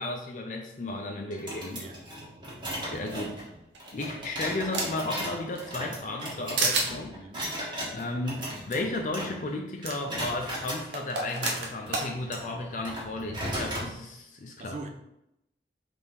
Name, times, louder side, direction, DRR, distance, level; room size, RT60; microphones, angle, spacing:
voice 1, 0.0-1.9 2.9-3.4 3.9-7.2 7.9-14.8, left 2 dB, 45° left, 0.4 m, -34 dB
sound 1, 1.3-9.6 9.8-10.8 11.3-13.9, equal, 25° right, 1.2 m, -37 dB
voice 2, 1.7-2.0 3.2-3.3 7.1-7.6 14.6-14.9, right 3 dB, 40° right, 0.5 m, -42 dB
sound 2, 3.7-5.1 5.6-6.3 6.6-6.9 8.4-8.5 8.7-8.8 9.8-10.0 10.9-12.1, right 3 dB, 85° right, 0.8 m, -30 dB
3.6 x 3.4 x 4.3 m
head